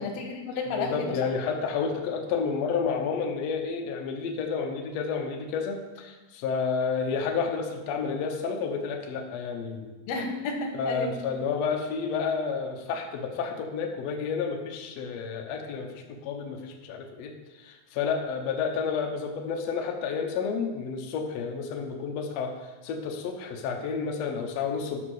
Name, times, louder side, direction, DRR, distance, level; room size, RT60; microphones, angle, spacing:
voice 1, 0.0-1.2 10.1-11.1, left 3 dB, 90° left, 3 dB, 3.0 m, -31 dB
voice 2, 0.8-9.9 10.7-25.0, left 5 dB, 65° left, 2 dB, 1.7 m, -30 dB
10.5 x 5.2 x 6.3 m, 1.2 s
omnidirectional pair, 4.1 m